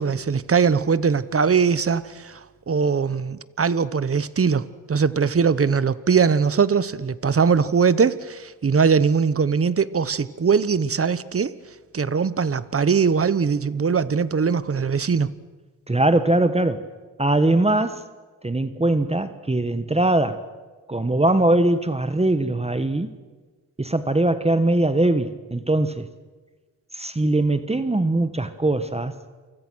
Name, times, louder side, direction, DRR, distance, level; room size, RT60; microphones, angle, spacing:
voice 1, 0.0-11.5 11.9-15.3, right 6 dB, 40° right, 16 dB, 1.1 m, -21 dB
voice 2, 15.9-16.9 17.2-18.0 18.4-20.4 20.9-23.1 23.8-26.1 26.9-29.1, right 2 dB, 20° right, 11 dB, 1.3 m, -21 dB
29.5 x 24.5 x 6.3 m, 1.3 s
cardioid pair, 85°, 34 cm